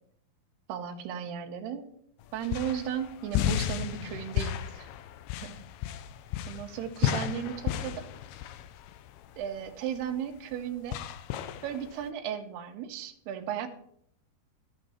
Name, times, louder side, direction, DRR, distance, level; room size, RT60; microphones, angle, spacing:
voice 1, 0.7-1.9 2.3-4.9 5.4-5.6 6.5-8.1 9.4-11.0 11.6-13.7, right 9 dB, 85° right, 6 dB, 3.0 m, -35 dB
sound 1, 2.2-12.1, left 11 dB, 80° left, 2.4 m, -34 dB
13.0 x 8.7 x 4.2 m, 0.69 s
omnidirectional pair, 4.5 m